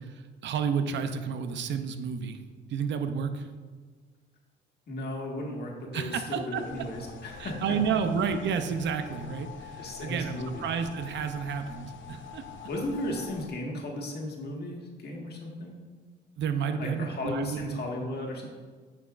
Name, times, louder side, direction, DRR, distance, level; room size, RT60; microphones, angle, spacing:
voice 1, 0.0-2.4 2.7-3.5 5.9-6.6 7.4-12.4 16.4-17.7, right 6 dB, 65° right, 8 dB, 0.6 m, -31 dB
voice 2, 4.9-7.8 9.8-10.7 12.7-15.8 16.8-18.5, left 1 dB, 55° left, -1 dB, 1.6 m, -35 dB
sound 1, 6.5-13.5, left 6 dB, 70° left, 0.6 m, -46 dB
9.1 x 6.2 x 2.5 m, 1.5 s
cardioid pair, 90°, 20 cm